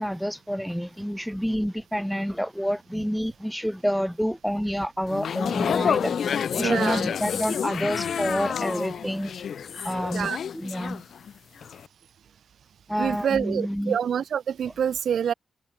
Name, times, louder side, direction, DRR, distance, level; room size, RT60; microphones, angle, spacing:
voice 1, 0.0-9.3 9.8-11.0 12.9-14.0, equal, ahead, 3.6 m, -28 dB
sound 1, 5.1-11.3 11.6-11.9, left 7 dB, 50° left, 3.1 m, -29 dB
voice 2, 6.6-7.0 10.1-10.4 13.0-15.3, right 8 dB, 60° right, 2.8 m, -26 dB
wide cardioid pair, 180°, 0 cm